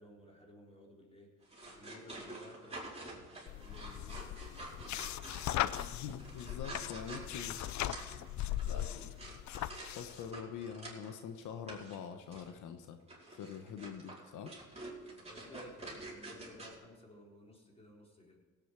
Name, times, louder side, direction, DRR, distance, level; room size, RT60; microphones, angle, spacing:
voice 1, 0.0-4.3 4.8-6.4 8.4-9.1 15.2-18.5, left 1 dB, 20° left, -1 dB, 4.1 m, -56 dB
sound 1, 1.4-11.2 11.7-12.0 12.3-12.5 13.1-16.8, right 2 dB, 20° right, 4.8 m, -49 dB
sound 2, 3.5-10.3, left 13 dB, 70° left, 0.6 m, -39 dB
voice 2, 5.9-7.7 8.7-8.8 9.9-13.0 13.3-14.5, left 7 dB, 85° left, 7 dB, 1.1 m, -45 dB
17.5 x 8.9 x 4.8 m, 1.5 s
cardioid pair, 90°, 30 cm